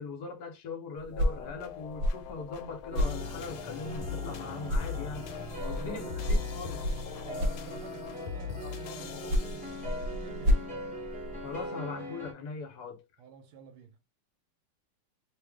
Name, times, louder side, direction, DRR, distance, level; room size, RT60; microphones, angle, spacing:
voice 1, 0.0-5.3 5.7-6.8 11.4-13.0, left 4 dB, 60° left, 1.3 m, -40 dB
sound 1, 1.0-4.4 4.6-8.2 9.0-11.7, left 1 dB, 65° right, 1.3 m, -32 dB
sound 2, 1.1-10.3, left 8 dB, 85° left, 1.4 m, -42 dB
sound 3, 2.9-12.3, equal, 10° right, 0.5 m, -41 dB
voice 2, 5.5-6.3 7.2-10.7 13.2-14.0, right 5 dB, 85° right, 1.5 m, -49 dB
3.2 x 2.4 x 3.5 m
omnidirectional pair, 2.3 m